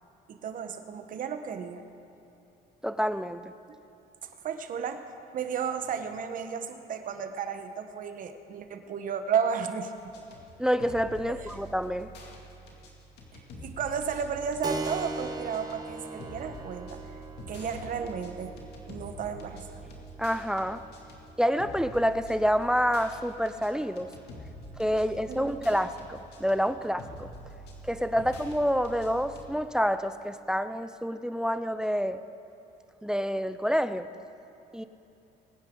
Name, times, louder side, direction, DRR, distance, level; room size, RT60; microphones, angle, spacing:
voice 1, 0.3-1.8 3.7-3.8 4.2-5.0 5.3-9.9 13.3-17.0 17.5-18.5 18.9-19.8 25.3-25.6, right 7 dB, 55° right, 8 dB, 1.1 m, -33 dB
voice 2, 2.8-3.4 10.6-12.1 20.2-20.8 21.4-24.1 24.8-27.3 27.8-32.2 33.0-34.1 34.7-34.8, equal, 5° right, 11 dB, 0.4 m, -28 dB
sound 1, 10.0-29.5, equal, 75° left, 2.3 m, -46 dB
Keyboard (musical), 14.6-22.8, right 3 dB, 25° right, 1.1 m, -41 dB
22.0 x 9.9 x 3.8 m, 3.0 s
cardioid pair, 110°, 17 cm